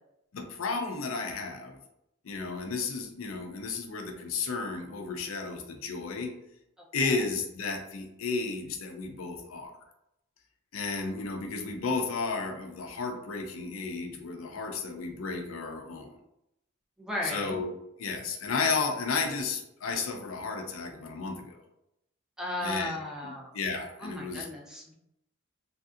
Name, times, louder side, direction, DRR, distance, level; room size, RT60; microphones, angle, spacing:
voice 1, 0.3-1.8 2.2-6.3 6.9-9.7 10.7-16.2 17.2-17.7 18.0-21.5 22.6-22.9 23.2-24.5, left 4 dB, 80° left, 3 dB, 0.5 m, -33 dB
voice 2, 17.0-17.5 22.4-23.5 24.0-24.9, left 1 dB, 5° right, -3 dB, 0.5 m, -35 dB
3.2 x 2.6 x 2.4 m, 0.81 s
head